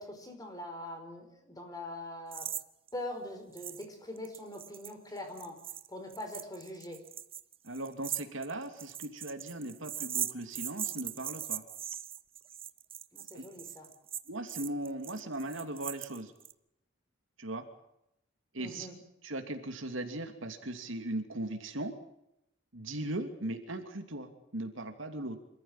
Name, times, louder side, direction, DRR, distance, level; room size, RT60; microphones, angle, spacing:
voice 1, 0.0-2.5 2.9-5.6 5.9-7.0 13.1-13.9 18.6-18.9, left 1 dB, 20° left, 5 dB, 5.0 m, -42 dB
sound 1, 2.3-2.6 2.9-3.0 3.6-3.9 4.2-16.5, right 10 dB, 25° right, 0.8 m, -40 dB
voice 2, 7.6-11.6 13.3-13.5 14.3-16.3 17.4-17.6 18.5-18.9 19.2-21.9 22.7-25.4, right 1 dB, 65° right, 6 dB, 2.8 m, -38 dB
26.5 x 14.5 x 9.0 m, 0.80 s
head